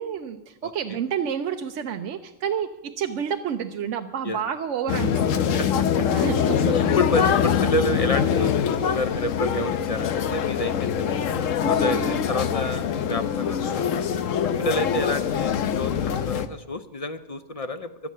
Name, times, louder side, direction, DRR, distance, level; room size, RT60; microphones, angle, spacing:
voice 1, 0.0-2.7 3.0-5.6 6.1-6.8 11.6-12.2, right 8 dB, 75° right, 5 dB, 1.0 m, -29 dB
voice 2, 0.6-1.0 4.2-4.4 5.6-5.7 6.0-6.1 7.0-11.1 11.7-13.9 14.4-17.9, left 1 dB, 40° left, 10 dB, 0.5 m, -29 dB
sound 1, 4.9-16.5, left 8 dB, 85° left, 1.1 m, -24 dB
16.5 x 12.0 x 5.5 m, 1.0 s
omnidirectional pair, 1.3 m